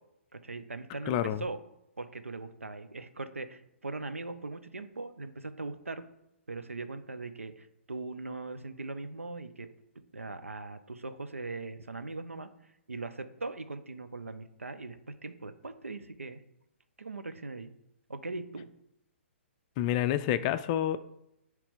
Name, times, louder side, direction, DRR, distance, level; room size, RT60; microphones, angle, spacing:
voice 1, 0.3-1.6 2.0-6.0 6.5-9.7 10.1-12.5 12.9-16.4 17.0-17.7 18.1-18.7, right 3 dB, 85° right, 10 dB, 0.7 m, -40 dB
voice 2, 1.1-1.4 19.8-21.0, left 11 dB, 30° left, 12 dB, 0.4 m, -28 dB
9.8 x 3.3 x 5.2 m, 0.85 s
figure-of-eight pair, 125°, 7 cm